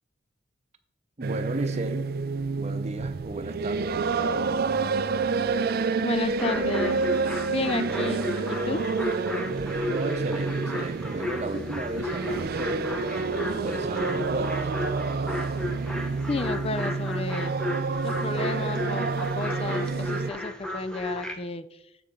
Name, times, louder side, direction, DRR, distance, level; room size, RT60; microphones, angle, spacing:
voice 1, 1.2-2.1 2.6-4.4 9.9-14.7, right 2 dB, 35° right, 8 dB, 0.8 m, -35 dB
sound 1, 1.2-20.3, right 4 dB, 55° right, 0.4 m, -29 dB
voice 2, 6.0-7.0 7.5-8.8 16.3-17.5 18.0-21.8, left 3 dB, 30° left, 13 dB, 0.5 m, -32 dB
sound 2, 6.3-21.3, left 1 dB, 5° left, 0.9 m, -34 dB
7.9 x 6.9 x 3.8 m, 0.80 s
head